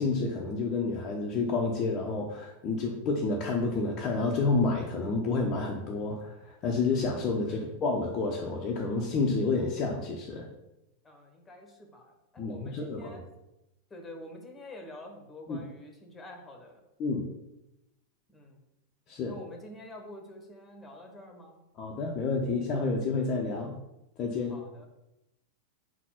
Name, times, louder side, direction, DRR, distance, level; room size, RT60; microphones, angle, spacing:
voice 1, 0.0-10.5 12.4-13.2 15.5-15.6 17.0-17.2 19.1-19.3 21.8-23.7 24.2-24.6, left 3 dB, 30° left, -2 dB, 0.9 m, -29 dB
voice 2, 11.0-13.3 13.9-16.8 18.3-18.6 19.2-21.7 24.5-24.9, left 1 dB, 15° left, 3 dB, 1.3 m, -47 dB
4.6 x 4.2 x 5.8 m, 0.90 s
figure-of-eight pair, 90°, 0 cm